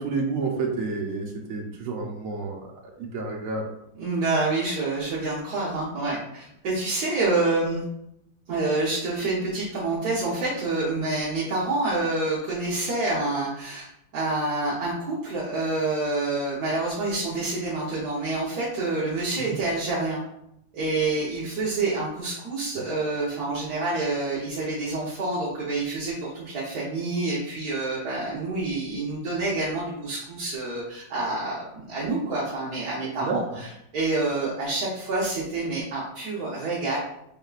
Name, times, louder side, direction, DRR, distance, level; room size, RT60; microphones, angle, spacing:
voice 1, 0.0-2.6 3.0-3.6 19.5-19.6 33.2-33.4, right 4 dB, 85° right, 0 dB, 0.7 m, -29 dB
voice 2, 4.0-7.8 8.5-20.2 20.7-37.0, right 2 dB, 55° right, -8 dB, 1.3 m, -27 dB
4.7 x 3.6 x 2.4 m, 0.78 s
omnidirectional pair, 2.2 m